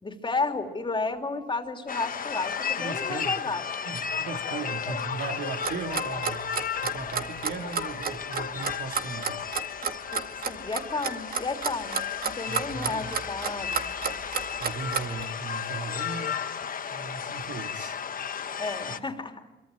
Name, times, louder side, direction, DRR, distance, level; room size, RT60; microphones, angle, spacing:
voice 1, 0.0-3.6 4.5-5.0 9.8-13.8 18.6-19.4, left 3 dB, 25° left, 3.2 m, -33 dB
sound 1, 1.9-19.0, left 7 dB, 45° left, 1.2 m, -34 dB
voice 2, 2.8-3.4 3.8-9.4 12.5-13.0 14.3-16.4 16.9-18.0 18.8-18.9, right 4 dB, 65° right, 2.6 m, -37 dB
Clock, 5.6-15.2, right 6 dB, 45° right, 2.1 m, -30 dB
26.5 x 24.0 x 9.4 m
cardioid pair, 90°, 20 cm